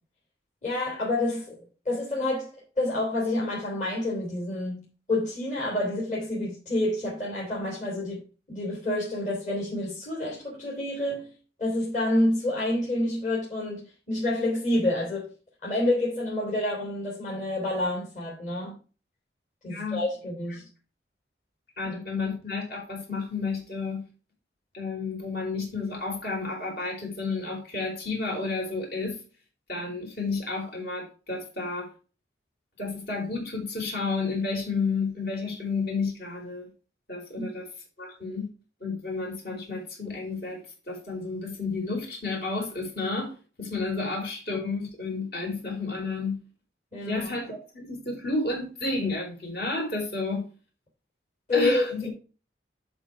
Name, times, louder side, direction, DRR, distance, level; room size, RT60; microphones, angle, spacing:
voice 1, 0.6-1.6 1.8-8.2 8.5-11.3 11.6-15.3 15.6-18.7 19.6-20.6 21.8-22.0 37.4-37.5 46.9-47.3 51.5-52.1, left 1 dB, 40° left, 3.4 m, -28 dB
voice 2, 19.7-20.0 21.8-24.0 24.7-29.2 29.7-31.9 32.8-36.7 37.1-37.6 38.0-38.5 38.8-40.6 40.9-46.4 47.1-50.4 51.5-52.0, left 3 dB, 60° left, 4.7 m, -31 dB
11.5 x 4.0 x 4.7 m
head